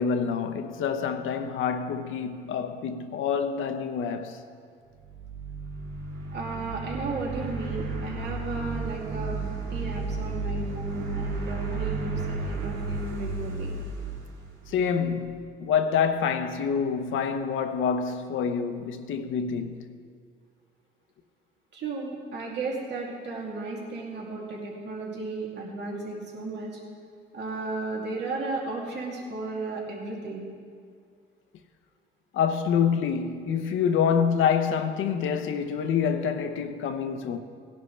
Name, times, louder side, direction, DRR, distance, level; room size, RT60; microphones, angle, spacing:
voice 1, 0.0-4.4 14.7-19.9 32.3-37.4, left 7 dB, 80° left, 0.9 m, -27 dB
sound 1, 5.0-15.2, right 3 dB, 85° right, 2.1 m, -33 dB
voice 2, 6.3-9.4 9.7-13.7 21.7-26.8 27.3-30.5, right 3 dB, 60° right, 2.6 m, -34 dB
18.0 x 10.5 x 3.3 m
cardioid pair, 90°, 20 cm